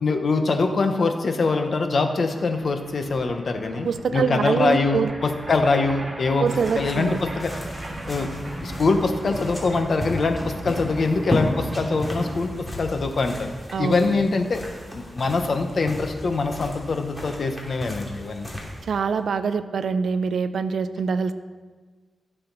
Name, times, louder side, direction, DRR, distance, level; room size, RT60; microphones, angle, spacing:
voice 1, 0.0-6.5 6.8-7.5 8.1-8.3 8.6-12.5 12.8-13.5 13.8-14.6 14.9-18.5, left 3 dB, 60° left, 6 dB, 1.1 m, -23 dB
sound 1, 1.5-1.6 1.8-12.7, right 1 dB, 45° right, 2.9 m, -37 dB
voice 2, 3.8-5.1 6.4-7.2 13.7-14.0 18.8-21.3, right 5 dB, 80° right, 12 dB, 0.5 m, -24 dB
sound 2, 6.5-19.2, left 1 dB, 15° left, 2.8 m, -35 dB
16.0 x 6.8 x 4.0 m, 1.4 s
cardioid pair, 85°, 0 cm